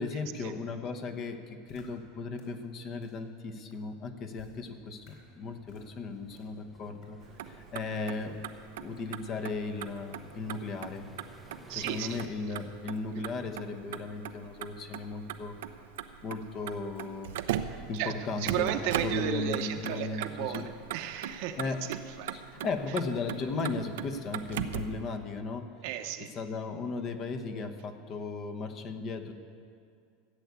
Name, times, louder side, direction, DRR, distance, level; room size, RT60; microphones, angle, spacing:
voice 1, 0.0-7.2 7.4-8.4 8.8-11.1 11.7-15.5 16.2-17.3 17.7-18.7 19.0-20.7 21.6-21.9 22.3-25.7 26.3-29.3, left 3 dB, 35° left, 6 dB, 1.1 m, -36 dB
sound 1, 1.7-1.8 2.3-2.4 3.0-3.1 3.7-3.8 4.4-4.5 5.0-5.1 5.7-5.9 6.4-6.5 7.0-7.1, left 5 dB, 60° left, 4.2 m, -56 dB
sound 2, 4.7-12.3, equal, ahead, 0.7 m, -56 dB
Motor vehicle (road), 7.2-25.0, right 10 dB, 80° right, 0.7 m, -39 dB
voice 2, 11.7-12.2 17.5-17.7 17.9-22.4 22.9-23.0 25.8-26.3, right 11 dB, 60° right, 7 dB, 1.0 m, -34 dB
15.0 x 8.3 x 8.3 m, 2.4 s
supercardioid pair, 150°, 0 cm